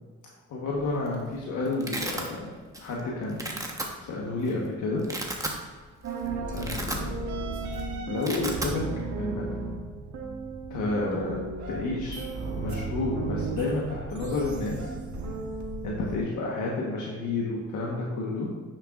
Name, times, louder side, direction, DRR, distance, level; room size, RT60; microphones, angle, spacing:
voice 1, 0.5-2.5 2.8-3.6 4.0-5.1 6.5-7.2 8.1-8.9 9.2-9.5 10.7-12.3 12.5-14.9 15.8-18.6, left 2 dB, 80° left, -3 dB, 1.4 m, -30 dB
Domestic sounds home sounds, 0.8-1.1 1.4-2.3 2.7-3.0 3.3-3.8 4.5-4.6 4.9-5.6 6.0-6.1 6.4-7.4 7.6-8.7, right 1 dB, 10° right, 1.2 m, -34 dB
sound 1, 6.0-16.2, right 3 dB, 70° right, 1.4 m, -34 dB
9.9 x 6.7 x 2.5 m, 1.5 s
cardioid pair, 90°, 30 cm